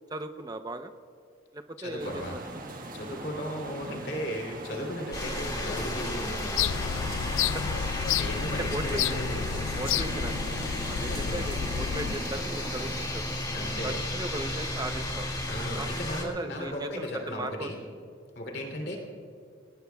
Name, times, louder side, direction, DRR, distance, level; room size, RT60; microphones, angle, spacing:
voice 1, 0.1-0.9 1.5-2.4 3.1-3.2 7.5-7.6 8.6-9.2 9.8-10.5 10.8-13.3 13.8-15.3 15.8-17.7 18.6-18.7, right 2 dB, 20° right, 7 dB, 0.6 m, -37 dB
voice 2, 1.8-2.4 2.9-7.0 8.1-10.0 11.0-11.5 13.5-13.9 14.3-14.4 15.5-17.8 18.3-19.0, equal, 50° left, 0 dB, 2.9 m, -36 dB
sound 1, 2.0-13.1, right 2 dB, 45° right, 1.4 m, -41 dB
sound 2, 5.1-16.2, left 1 dB, 20° left, 2.1 m, -33 dB
sound 3, 6.6-12.1, left 10 dB, 70° left, 0.3 m, -31 dB
28.0 x 19.5 x 2.3 m, 2.4 s
head